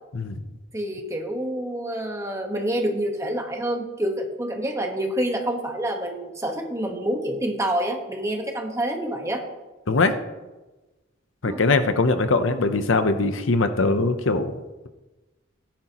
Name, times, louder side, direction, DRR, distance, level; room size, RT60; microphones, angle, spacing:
voice 1, 0.7-9.4 11.4-11.6, right 1 dB, 15° right, 2 dB, 1.3 m, -27 dB
voice 2, 11.4-14.6, left 3 dB, 70° left, 10 dB, 0.7 m, -21 dB
16.0 x 10.5 x 3.0 m, 1.1 s
head